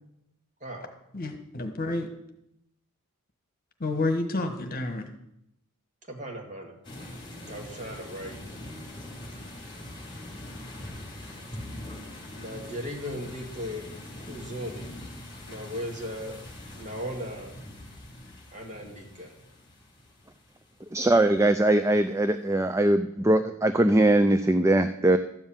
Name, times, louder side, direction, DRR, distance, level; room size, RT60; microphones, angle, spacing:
voice 1, 1.1-2.1 3.8-5.1, left 2 dB, 40° left, 6 dB, 1.4 m, -29 dB
voice 2, 6.1-6.7 7.5-8.4 12.3-13.9 14.2-14.9 15.5-16.4 16.7-17.6 18.5-19.3, equal, 35° right, 1 dB, 2.2 m, -37 dB
sound 1, 6.8-21.4, left 1 dB, 20° left, 2.6 m, -43 dB
voice 3, 20.9-25.2, right 1 dB, 15° right, 9 dB, 0.4 m, -21 dB
13.0 x 5.5 x 8.9 m, 0.79 s
head